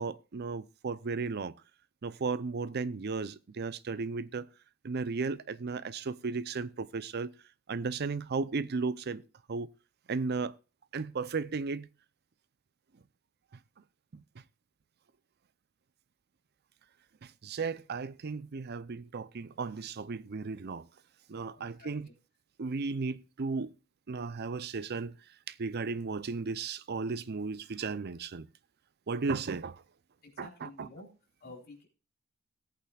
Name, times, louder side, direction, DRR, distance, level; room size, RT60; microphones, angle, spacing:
voice 1, 0.0-1.5 2.0-4.5 4.8-7.3 7.7-9.2 9.5-9.7 10.1-10.5 10.9-11.9 14.1-14.2 17.2-20.9 21.3-22.1 22.6-23.7 24.1-25.1 25.5-28.5 29.1-29.8 30.4-30.9, right 4 dB, 50° right, 0.5 m, -35 dB
voice 2, 21.5-21.9 30.2-31.1 31.4-31.9, left 2 dB, 50° left, 3.9 m, -50 dB
18.5 x 8.5 x 2.4 m
head